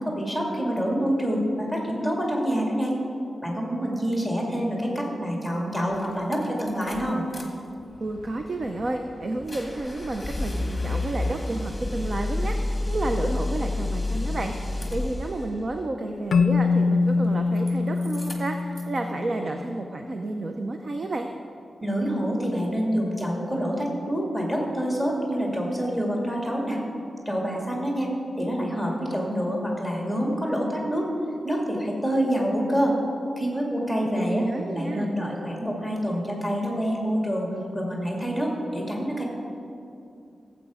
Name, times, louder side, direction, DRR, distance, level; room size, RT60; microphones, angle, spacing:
voice 1, 0.0-2.9 3.4-7.2 21.8-26.8 27.3-28.1 28.4-31.1 31.4-33.0 33.4-37.5 37.7-39.2, equal, 5° right, -2 dB, 2.1 m, -27 dB
sound 1, 5.5-5.6 5.9-7.4 7.8-15.5 17.0-17.7 18.0-19.0, left 2 dB, 15° left, 1.6 m, -31 dB
voice 2, 8.0-21.3 34.0-35.1, right 2 dB, 40° right, 4 dB, 0.6 m, -31 dB
Keyboard (musical), 16.3-19.5, left 4 dB, 75° left, 0.4 m, -23 dB
17.0 x 8.0 x 4.9 m, 2.6 s
wide cardioid pair, 160°, 0 cm